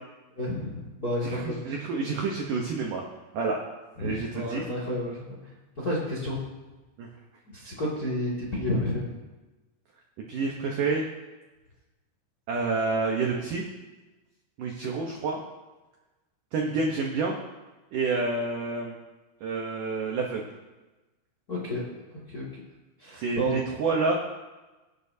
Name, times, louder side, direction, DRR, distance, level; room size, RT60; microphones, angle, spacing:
voice 1, 0.4-1.6 4.0-5.4 5.8-6.4 7.5-9.1 21.5-21.8 22.3-22.5 23.0-23.5, left 1 dB, 35° left, -5 dB, 1.6 m, -30 dB
voice 2, 1.2-3.0 3.3-3.6 4.0-4.7 7.0-7.1 10.3-11.1 12.5-13.6 14.6-15.4 16.5-17.4 17.9-18.9 19.4-20.4 23.2-24.1, right 4 dB, 85° right, 0 dB, 1.8 m, -28 dB
24.5 x 8.7 x 2.8 m, 1.1 s
omnidirectional pair, 5.4 m